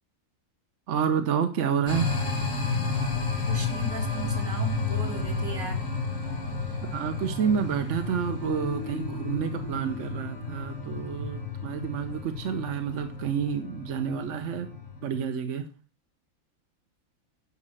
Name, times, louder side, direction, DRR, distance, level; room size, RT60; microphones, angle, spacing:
voice 1, 0.9-2.1 6.9-14.7 15.0-15.7, right 7 dB, 60° right, 7 dB, 1.2 m, -29 dB
sound 1, 1.9-15.1, left 4 dB, 70° left, 2.2 m, -32 dB
voice 2, 3.5-5.8, right 4 dB, 90° right, 2 dB, 2.7 m, -37 dB
sound 2, 8.4-11.6, left 7 dB, 10° left, 0.7 m, -42 dB
9.9 x 5.2 x 7.6 m, 0.36 s
omnidirectional pair, 1.4 m